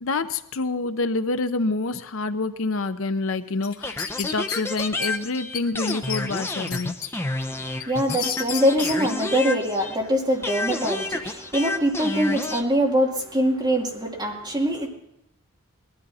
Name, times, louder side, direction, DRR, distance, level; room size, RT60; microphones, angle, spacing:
voice 1, 0.0-7.0, left 3 dB, 60° left, 11 dB, 0.6 m, -27 dB
sound 1, 3.6-5.1 5.5-5.6 5.9-7.1 7.5-9.0, left 9 dB, 80° left, 1.2 m, -31 dB
sound 2, 3.8-10.1 10.4-12.6, left 2 dB, 10° left, 0.7 m, -30 dB
voice 2, 7.5-14.9, equal, 20° right, -1 dB, 2.4 m, -23 dB
20.0 x 13.0 x 4.2 m, 0.80 s
head